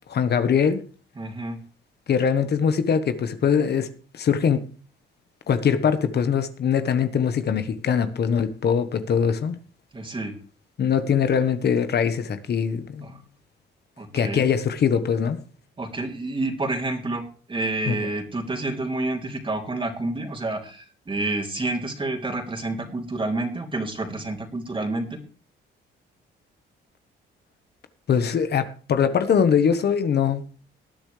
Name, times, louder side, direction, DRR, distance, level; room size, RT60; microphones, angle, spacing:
voice 1, 0.1-0.8 2.1-3.9 4.1-4.6 5.5-9.6 10.8-13.1 14.1-15.4 17.8-18.0 28.1-30.4, left 7 dB, 55° left, 1.3 m, -22 dB
voice 2, 1.2-1.6 9.9-10.3 13.0-13.1 14.0-14.5 15.8-17.2 17.5-25.2, right 2 dB, 25° right, 3.3 m, -29 dB
19.0 x 10.5 x 3.4 m
cardioid pair, 90°, 20 cm